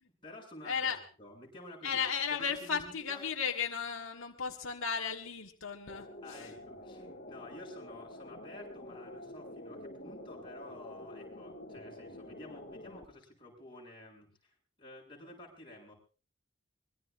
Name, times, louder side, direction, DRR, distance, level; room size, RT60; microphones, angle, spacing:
voice 1, 0.0-2.0 2.4-3.2 6.2-15.9, left 1 dB, 25° left, -1 dB, 7.6 m, -51 dB
voice 2, 0.6-1.0 1.8-6.5, left 6 dB, 85° left, 2 dB, 1.7 m, -35 dB
sound 1, 5.9-13.0, left 1 dB, 50° left, 2.6 m, -48 dB
24.5 x 22.5 x 2.6 m, 0.36 s
head